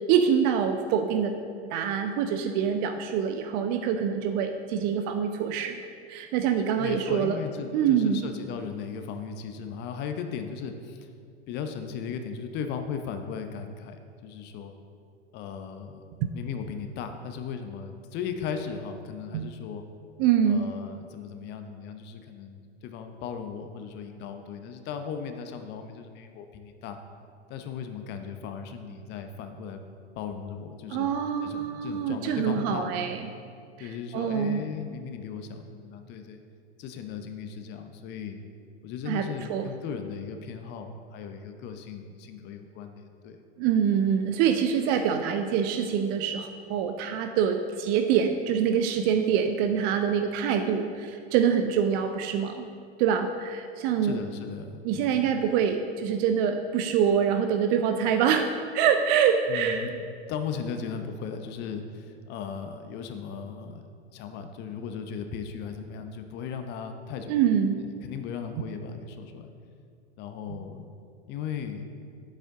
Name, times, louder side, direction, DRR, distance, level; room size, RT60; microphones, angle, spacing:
voice 1, 0.1-1.3 1.7-5.8 6.1-7.4 7.7-8.2 19.3-19.5 20.2-20.7 30.9-33.3 33.8-34.6 39.1-39.7 43.6-52.6 53.0-54.1 54.8-58.5 58.7-59.9 67.3-67.8 70.5-70.6, right 8 dB, 30° right, 7 dB, 0.4 m, -25 dB
voice 2, 6.8-11.1 11.5-14.7 15.3-16.0 16.3-19.8 20.4-27.0 27.5-29.8 30.1-31.1 31.4-33.0 33.8-36.4 36.8-38.4 38.8-43.4 54.0-55.3 59.5-67.3 67.8-69.5 70.2-70.9 71.3-71.9, left 6 dB, 30° left, 7 dB, 0.7 m, -37 dB
8.9 x 7.4 x 3.7 m, 2.3 s
figure-of-eight pair, 95°, 34 cm